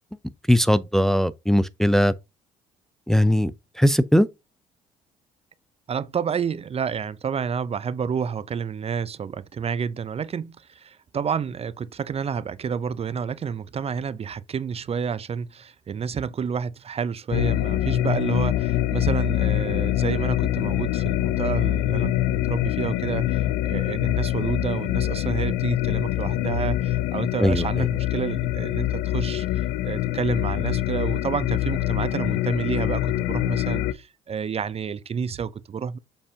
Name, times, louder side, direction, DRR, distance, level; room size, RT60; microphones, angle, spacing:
voice 1, 0.5-2.1 3.1-3.5 3.8-4.3 27.4-27.9, equal, ahead, 0.5 m, -19 dB
voice 2, 5.9-36.0, right 6 dB, 40° right, 0.6 m, -29 dB
sound 1, 17.3-33.9, left 14 dB, 75° left, 0.6 m, -25 dB
6.8 x 5.4 x 2.8 m
hypercardioid pair, 55°, 16 cm